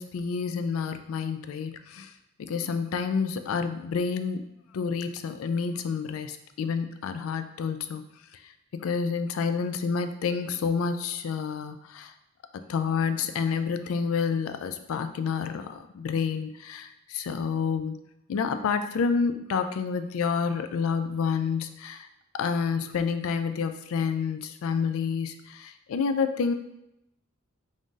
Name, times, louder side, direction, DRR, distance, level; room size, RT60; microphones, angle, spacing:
voice 1, 0.0-2.1 2.4-4.4 4.7-8.0 8.4-12.1 12.7-18.0 18.3-22.1 22.3-26.5, left 5 dB, 80° left, 9 dB, 0.3 m, -29 dB
3.6 x 2.6 x 3.7 m, 0.84 s
head